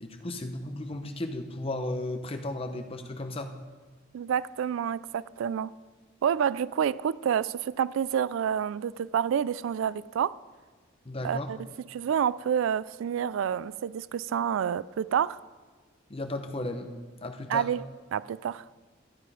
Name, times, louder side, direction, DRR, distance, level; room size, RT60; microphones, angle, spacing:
voice 1, 0.0-3.5 11.0-11.5 16.1-16.9 17.2-17.7, left 1 dB, 30° left, 0.8 m, -34 dB
voice 2, 4.1-5.7 6.2-10.3 11.2-11.6 11.9-15.4 17.5-17.8 18.1-18.6, right 8 dB, 85° right, 0.3 m, -28 dB
12.5 x 9.3 x 4.9 m
head